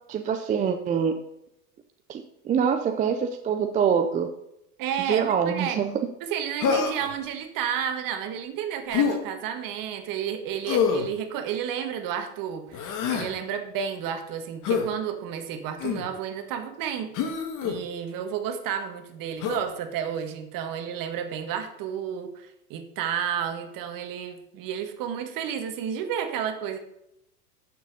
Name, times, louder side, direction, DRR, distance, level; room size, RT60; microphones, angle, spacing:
voice 1, 0.1-1.2 2.1-4.3 5.1-5.9, right 7 dB, 15° right, 6 dB, 0.5 m, -25 dB
voice 2, 4.8-5.8 6.2-17.1 17.6-26.8, right 8 dB, 40° right, 7 dB, 1.7 m, -31 dB
Human voice, 6.6-7.2 8.9-9.2 10.7-11.1 12.7-13.3 14.6-14.9 15.8-16.1 17.1-17.8 19.4-19.6, left 6 dB, 40° left, 1.9 m, -26 dB
8.9 x 6.9 x 5.3 m, 0.83 s
hypercardioid pair, 105°, 49 cm